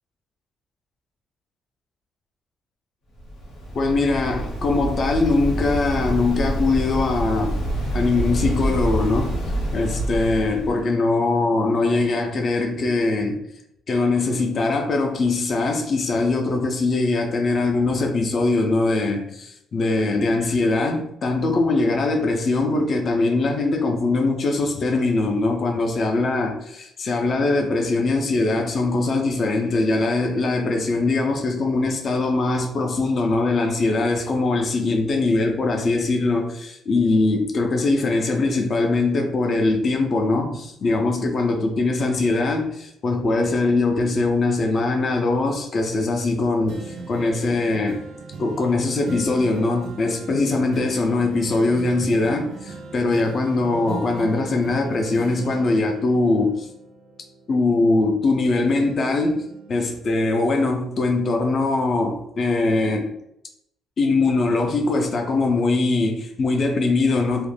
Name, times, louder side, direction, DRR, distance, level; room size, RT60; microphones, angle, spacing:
Waves surf, 3.1-10.8, equal, 90° left, 0.8 m, -27 dB
voice 1, 3.7-7.6 7.9-9.4 9.7-13.4 13.9-48.0 48.4-56.7 57.5-63.1 64.0-67.5, left 3 dB, 45° left, 0.4 m, -22 dB
sound 1, 46.7-58.3 58.7-60.6 61.1-61.2, right 4 dB, 80° right, 0.5 m, -39 dB
2.4 x 2.1 x 3.1 m
cardioid pair, 120°, 0 cm